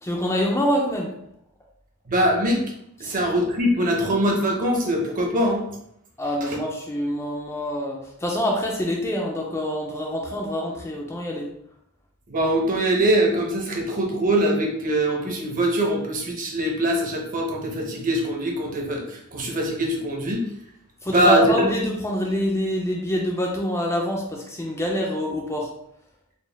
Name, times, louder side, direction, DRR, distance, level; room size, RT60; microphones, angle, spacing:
voice 1, 0.0-1.1 3.0-3.2 6.2-11.5 21.0-25.7, equal, 10° left, -1 dB, 0.5 m, -25 dB
voice 2, 2.1-2.6 3.0-5.6 6.4-6.6 12.3-20.4 21.1-21.7, right 1 dB, 40° right, 0 dB, 0.8 m, -22 dB
4.2 x 2.3 x 3.4 m, 0.75 s
head